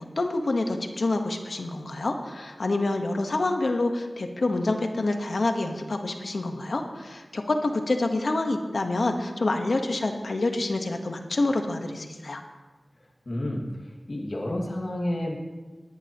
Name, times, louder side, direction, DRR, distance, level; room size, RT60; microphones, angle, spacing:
voice 1, 0.0-12.4, left 2 dB, 80° left, 5 dB, 1.2 m, -27 dB
voice 2, 13.3-15.4, left 1 dB, 60° left, -1 dB, 2.0 m, -30 dB
19.0 x 10.5 x 3.0 m, 1.3 s
wide cardioid pair, 60°, 0 cm